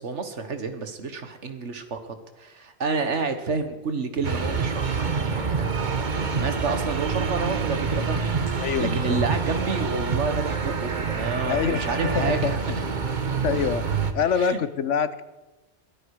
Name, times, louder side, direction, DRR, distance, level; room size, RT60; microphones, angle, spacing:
voice 1, 0.0-12.6 14.4-14.6, right 4 dB, 80° right, 8 dB, 1.9 m, -30 dB
sound 1, 4.2-14.1, right 5 dB, 45° right, 1.2 m, -27 dB
Walk footsteps, 4.4-14.3, right 1 dB, 20° left, 8.0 m, -46 dB
voice 2, 8.6-9.2 11.4-11.8 12.1-12.6 13.4-15.2, left 7 dB, 85° left, 14 dB, 1.3 m, -25 dB
22.0 x 13.5 x 4.9 m, 1.1 s
omnidirectional pair, 1.2 m